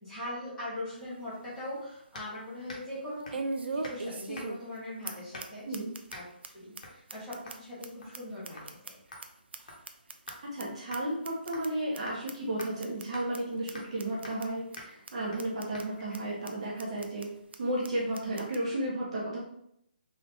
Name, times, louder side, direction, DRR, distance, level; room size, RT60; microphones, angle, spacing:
voice 1, 0.0-3.4 3.7-5.8 6.1-6.2 6.5-9.2, left 1 dB, 10° left, -10 dB, 1.4 m, -41 dB
sound 1, 0.9-1.0 1.5-1.6 3.3-4.8 5.1-5.2 5.4-5.5 5.7-6.1 6.4-6.5 6.8-6.9 7.1-9.3 9.5-10.6 10.9-11.0 11.2-11.7 11.9-12.0 12.3-12.4 12.6-13.0 13.3-13.4 13.7-13.8 14.0-14.5 14.7-14.8 15.1-15.2 15.4-15.8 16.1-16.2 16.5-16.6 16.8-17.3 17.5-17.6 17.8-17.9 18.1-18.6, right 3 dB, 85° right, 0.5 m, -38 dB
sound 2, 2.1-2.3 2.7-2.9 3.3-3.5 3.8-4.0 4.3-4.7 5.3-5.6 6.1-6.3 6.8-7.0 7.5-7.6 8.0-8.3 8.6-8.7 9.1-10.4 10.9-11.0 11.5-11.8 12.1-12.2 12.6-12.7 13.1-13.3 13.7-14.0 14.2-14.5 14.8-14.9 15.3-15.5 15.7-15.9, left 1 dB, 45° left, 1.0 m, -47 dB
voice 2, 5.7-6.0 10.4-17.3 17.6-19.4, right 1 dB, 35° right, -5 dB, 1.0 m, -33 dB
3.7 x 2.8 x 3.5 m, 0.74 s
hypercardioid pair, 175°, 6 cm